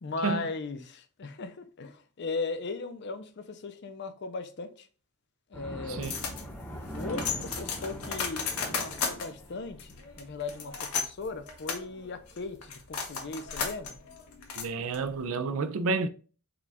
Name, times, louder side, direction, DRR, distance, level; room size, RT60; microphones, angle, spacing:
voice 1, 0.0-4.9 5.5-6.1 6.9-14.0, left 3 dB, 50° left, 0.5 m, -38 dB
sound 1, 5.5-10.0, equal, 5° left, 0.8 m, -41 dB
sound 2, 6.0-15.2, left 5 dB, 80° left, 0.9 m, -36 dB
voice 2, 14.6-16.1, right 4 dB, 65° right, 0.4 m, -30 dB
4.9 x 2.4 x 3.4 m
head